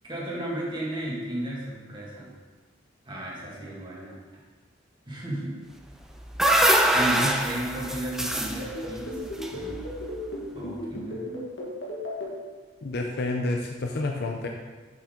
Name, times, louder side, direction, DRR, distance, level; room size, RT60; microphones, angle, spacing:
voice 1, 0.0-2.4 3.1-4.2 5.1-5.6 6.9-9.2 9.5-9.9 10.5-11.3, right 1 dB, 25° right, -5 dB, 1.9 m, -34 dB
sound 1, 5.9-10.2, right 1 dB, 5° right, 0.5 m, -24 dB
sound 2, 8.4-12.3, equal, 80° left, 1.7 m, -35 dB
voice 2, 12.8-14.5, left 2 dB, 60° left, 2 dB, 0.6 m, -29 dB
7.2 x 5.8 x 3.8 m, 1.4 s
head